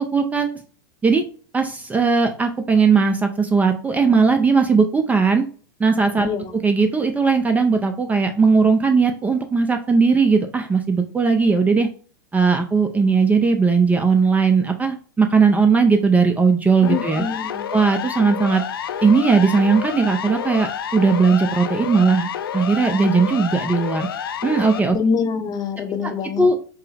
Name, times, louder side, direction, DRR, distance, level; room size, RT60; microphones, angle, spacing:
voice 1, 0.1-0.5 1.0-1.2 1.5-5.4 5.8-11.9 12.3-17.2 17.7-18.6 19.0-24.1 24.4-25.0 26.4-26.5, right 4 dB, 15° right, 6 dB, 0.4 m, -18 dB
Siren, 16.8-24.8, left 9 dB, 90° left, 0.4 m, -29 dB
voice 2, 16.8-17.7 24.9-26.5, left 5 dB, 35° left, 7 dB, 0.7 m, -25 dB
4.5 x 2.0 x 3.3 m, 0.41 s
hypercardioid pair, 110°, 12 cm